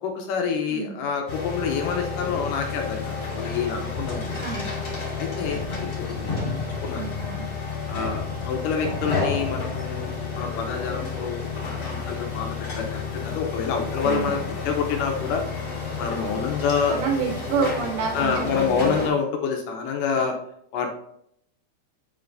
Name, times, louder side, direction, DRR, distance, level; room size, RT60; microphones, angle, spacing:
voice 1, 0.0-4.5 5.2-6.5 6.8-7.1 7.9-15.4 16.0-17.0 18.1-20.4 20.7-20.9, left 6 dB, 80° left, 3 dB, 2.0 m, -27 dB
sound 1, 1.3-19.1, left 4 dB, 45° left, 1.2 m, -31 dB
voice 2, 4.3-4.8 7.0-7.5 14.0-14.4 16.9-19.1, right 5 dB, 75° right, 1 dB, 2.5 m, -28 dB
8.7 x 5.6 x 2.6 m, 0.72 s
omnidirectional pair, 4.7 m